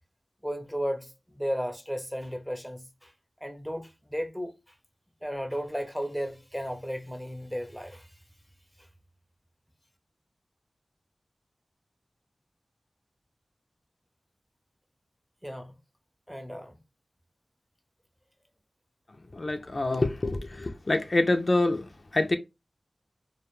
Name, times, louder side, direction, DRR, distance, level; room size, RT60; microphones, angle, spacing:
voice 1, 0.4-3.1 3.4-4.5 5.2-8.1 15.4-15.8 16.3-16.7, equal, ahead, 0.5 m, -34 dB
voice 2, 19.3-22.4, left 2 dB, 55° left, 0.3 m, -26 dB
2.2 x 2.1 x 2.9 m
wide cardioid pair, 55°, 0 cm